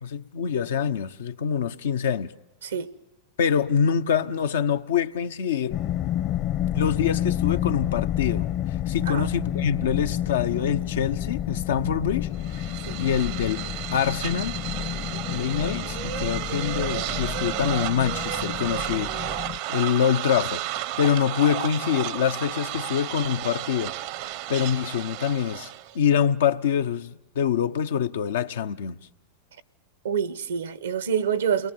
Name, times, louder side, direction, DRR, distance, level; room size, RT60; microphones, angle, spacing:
voice 1, 0.0-2.3 3.4-5.8 6.7-8.5 8.9-12.6 13.0-13.6 13.9-14.6 15.3-19.4 19.7-23.9 24.5-29.0, left 8 dB, 75° left, 0.9 m, -25 dB
voice 2, 2.6-2.9 9.1-9.3 12.9-13.0 30.0-31.7, right 7 dB, 80° right, 1.2 m, -26 dB
sound 1, 5.7-19.6, left 11 dB, 50° left, 1.1 m, -29 dB
sound 2, 12.4-26.0, right 14 dB, 60° right, 0.9 m, -32 dB
28.5 x 21.0 x 9.2 m
hypercardioid pair, 95°, 0 cm